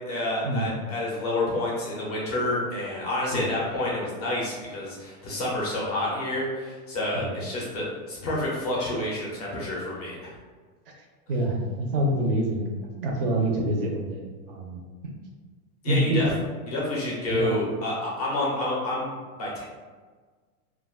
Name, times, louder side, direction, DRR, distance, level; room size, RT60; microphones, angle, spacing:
voice 1, 0.1-10.2 15.8-16.3 16.7-19.6, left 1 dB, 30° left, -5 dB, 0.4 m, -29 dB
voice 2, 11.3-12.6 13.0-14.8 15.9-16.2 17.3-17.6, right 1 dB, 40° right, 0 dB, 0.4 m, -26 dB
2.2 x 2.2 x 3.3 m, 1.4 s
supercardioid pair, 165°, 45 cm